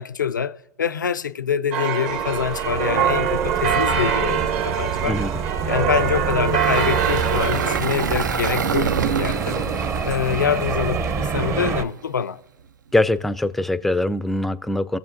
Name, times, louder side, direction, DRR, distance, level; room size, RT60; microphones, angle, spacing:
voice 1, 0.0-5.2 5.6-9.6 10.0-12.4, left 7 dB, 90° left, 0.4 m, -25 dB
sound 1, 1.7-7.8, right 8 dB, 50° right, 1.0 m, -23 dB
sound 2, 2.1-11.8, right 5 dB, 30° right, 0.7 m, -28 dB
voice 2, 5.1-5.4 12.9-15.0, left 1 dB, ahead, 0.3 m, -22 dB
Engine, 6.3-11.6, right 6 dB, 85° right, 0.4 m, -27 dB
18.0 x 7.0 x 2.5 m
hypercardioid pair, 105°, 10 cm